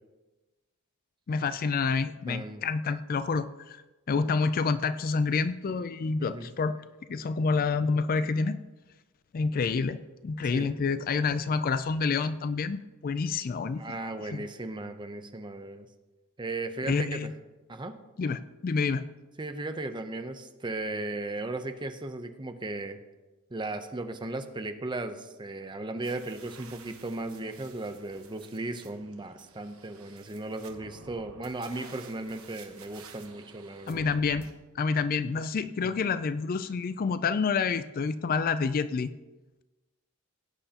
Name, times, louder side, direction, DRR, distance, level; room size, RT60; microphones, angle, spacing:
voice 1, 1.3-3.8 4.1-6.8 7.1-8.6 9.3-14.4 16.9-17.3 18.2-19.0 33.9-34.5 34.8-39.1, left 4 dB, 40° left, 13 dB, 0.3 m, -28 dB
voice 2, 2.3-2.6 6.2-6.5 10.5-10.7 13.8-15.9 16.4-17.2 17.7-18.0 19.4-23.0 23.5-34.0 35.8-35.9, right 2 dB, 20° right, 8 dB, 0.7 m, -36 dB
sound 1, 26.0-34.5, right 5 dB, 70° right, 1.3 m, -52 dB
17.0 x 8.9 x 2.9 m, 1.1 s
head